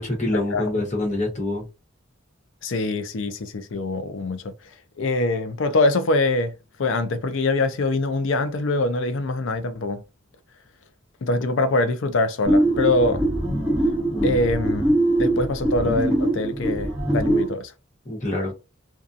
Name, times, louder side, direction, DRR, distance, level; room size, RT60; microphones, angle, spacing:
voice 1, 0.0-1.6 14.1-14.4 18.0-18.5, left 2 dB, 35° left, 1.1 m, -26 dB
voice 2, 2.6-4.5 5.0-6.5 6.8-10.0 11.2-13.2 14.2-14.8 15.2-17.7, left 2 dB, 70° left, 0.5 m, -23 dB
sound 1, 12.4-17.5, right 1 dB, 5° right, 1.0 m, -22 dB
2.6 x 2.3 x 2.4 m
head